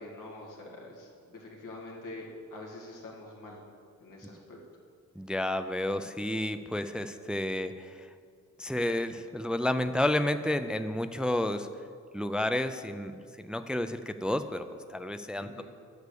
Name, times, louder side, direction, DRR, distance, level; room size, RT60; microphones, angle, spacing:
voice 1, 0.0-3.6 4.0-4.6 15.4-15.6, left 2 dB, 90° left, -2 dB, 2.2 m, -45 dB
voice 2, 5.2-8.1 8.6-11.7 12.1-15.6, left 1 dB, 5° right, 9 dB, 0.4 m, -31 dB
8.4 x 8.2 x 6.8 m, 2.2 s
cardioid pair, 95°, 31 cm